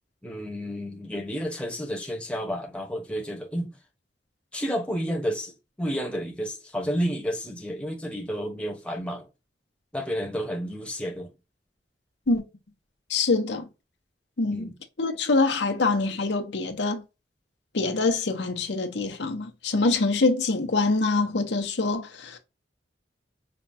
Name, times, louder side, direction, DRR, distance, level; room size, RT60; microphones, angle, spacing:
voice 1, 0.2-3.7 4.5-9.3 9.9-11.3 14.5-14.8, equal, 5° left, 0.8 m, -31 dB
voice 2, 13.1-13.6 14.4-14.7 15.0-17.0 17.7-22.4, left 3 dB, 85° left, 0.8 m, -25 dB
5.1 x 2.3 x 2.6 m
head